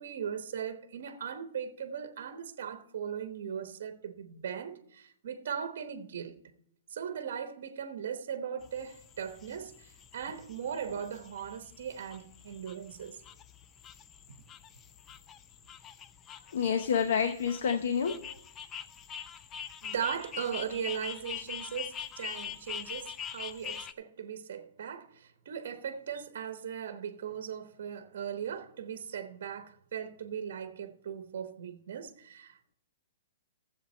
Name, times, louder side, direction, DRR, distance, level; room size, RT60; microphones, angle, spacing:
voice 1, 0.0-6.4 6.9-13.2 14.3-14.4 19.8-32.8, right 8 dB, 50° right, 1.1 m, -38 dB
sound 1, 8.6-23.9, left 8 dB, 15° left, 0.3 m, -44 dB
voice 2, 16.5-18.3, left 7 dB, 55° left, 0.8 m, -28 dB
13.5 x 7.8 x 4.4 m
hypercardioid pair, 180°, 0 cm